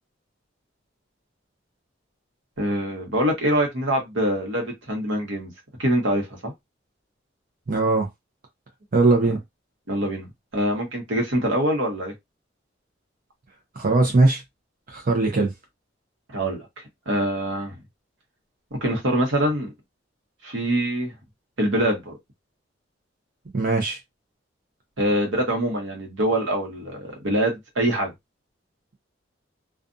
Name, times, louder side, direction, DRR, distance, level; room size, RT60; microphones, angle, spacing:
voice 1, 2.6-5.5 5.8-6.5 9.2-9.3 9.9-10.3 10.5-12.1 16.3-16.6 17.1-17.7 18.7-19.7 20.4-21.1 21.6-22.1 25.0-28.1, right 1 dB, 85° right, 1.2 m, -24 dB
voice 2, 7.7-8.1 8.9-9.4 13.8-14.4 14.9-15.5 23.5-24.0, right 3 dB, 45° right, 0.8 m, -20 dB
2.5 x 2.3 x 2.6 m
head